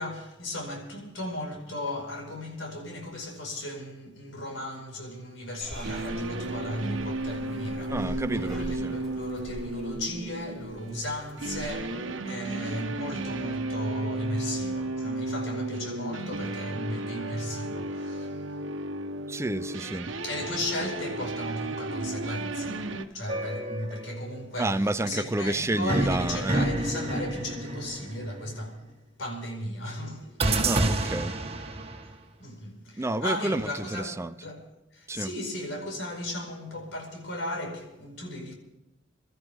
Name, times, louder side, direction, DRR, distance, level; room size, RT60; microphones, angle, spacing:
voice 1, 0.0-18.4 20.2-28.9 29.2-30.6 32.4-34.6 34.9-38.5, left 1 dB, 85° left, 5.0 m, -36 dB
Purr / Meow, 5.6-11.7, equal, ahead, 3.8 m, -43 dB
sound 1, 5.8-23.1, right 2 dB, 85° right, 1.2 m, -34 dB
voice 2, 7.9-9.0 19.3-20.1 24.6-26.7 30.6-31.3 33.0-34.3 35.1-35.3, right 2 dB, 15° right, 0.5 m, -30 dB
sound 2, 23.3-24.3 25.9-28.6 30.4-32.1, right 2 dB, 30° right, 1.7 m, -29 dB
29.5 x 13.5 x 3.6 m
head